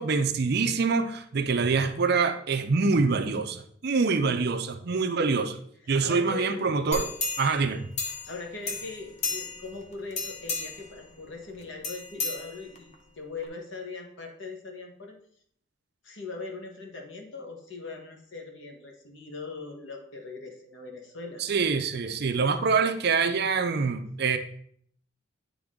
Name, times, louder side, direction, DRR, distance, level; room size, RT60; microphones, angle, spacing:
voice 1, 0.0-5.6 5.9-7.1 7.4-7.9 21.4-24.4, right 4 dB, 50° right, 8 dB, 0.5 m, -25 dB
voice 2, 5.8-6.6 8.3-15.1 16.0-21.4, left 3 dB, 60° left, 3 dB, 1.2 m, -40 dB
sound 1, 6.9-8.4 8.7-9.7 10.1-10.9 11.8-12.9 13.4-13.5, left 4 dB, 30° left, 0.8 m, -33 dB
9.2 x 3.5 x 3.7 m, 0.63 s
head